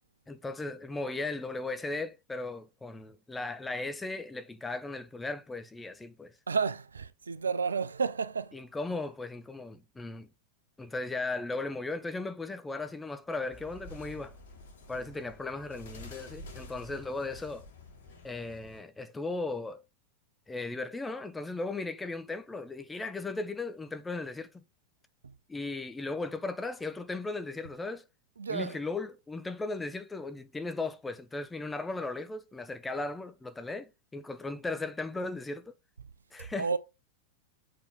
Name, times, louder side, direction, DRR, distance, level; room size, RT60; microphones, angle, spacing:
voice 1, 0.3-6.3 8.5-10.3 10.8-14.4 14.9-17.7 18.2-19.8 20.5-24.6 25.5-28.1 28.5-35.7 36.3-36.7, left 3 dB, 10° left, 0.8 m, -37 dB
voice 2, 6.5-8.6 25.2-25.3 28.4-28.8 36.4-36.8, right 5 dB, 75° right, 0.6 m, -31 dB
sound 1, 13.5-18.8, left 2 dB, 55° left, 2.3 m, -49 dB
7.0 x 4.8 x 3.6 m
figure-of-eight pair, 90°, 0 cm